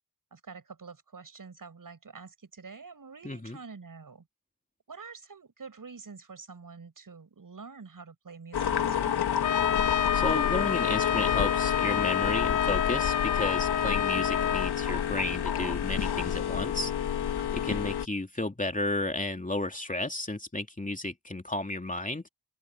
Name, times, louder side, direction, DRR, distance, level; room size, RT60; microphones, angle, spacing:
voice 1, 0.3-4.3 4.9-9.2 17.4-17.7, right 5 dB, 60° right, 6.6 m, -47 dB
voice 2, 3.2-3.6 10.1-16.9 17.5-22.3, left 2 dB, 20° left, 3.0 m, -33 dB
sound 1, 8.5-18.1, left 9 dB, 80° left, 1.9 m, -29 dB
Trumpet, 9.4-14.7, left 9 dB, 55° left, 0.8 m, -29 dB
open air
supercardioid pair, 40°, 38 cm